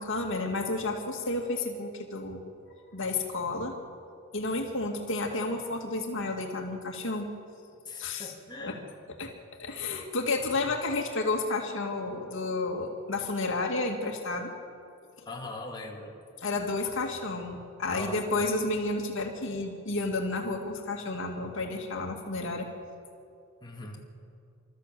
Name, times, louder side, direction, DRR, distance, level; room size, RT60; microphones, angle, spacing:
voice 1, 0.0-2.4 2.9-3.8 4.3-7.3 8.0-8.3 8.6-8.7 9.2-9.3 9.6-14.5 16.4-22.7, left 2 dB, 65° left, 2 dB, 2.2 m, -31 dB
voice 2, 7.8-8.9 15.3-16.2 17.9-18.2 23.6-24.1, left 2 dB, 20° left, -1 dB, 2.4 m, -41 dB
26.0 x 13.5 x 7.6 m, 2.4 s
head